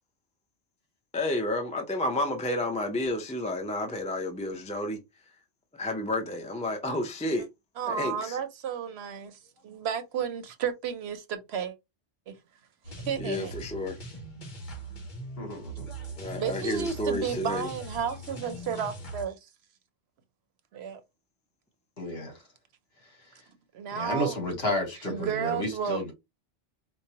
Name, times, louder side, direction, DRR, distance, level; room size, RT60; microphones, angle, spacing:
voice 1, 1.1-5.0 5.7-7.5 7.9-8.4 13.2-14.0 16.2-17.7, left 1 dB, 10° left, 0.3 m, -31 dB
voice 2, 7.8-11.7 12.3-12.4 12.9-13.5 16.3-19.5 20.7-21.0 23.7-24.4 25.0-26.1, right 7 dB, 70° right, 0.8 m, -33 dB
sound 1, 12.8-19.3, right 2 dB, 45° left, 1.1 m, -40 dB
voice 3, 15.4-15.9 22.0-22.3 23.9-26.1, left 1 dB, 60° left, 1.5 m, -31 dB
4.6 x 2.1 x 2.8 m
omnidirectional pair, 1.2 m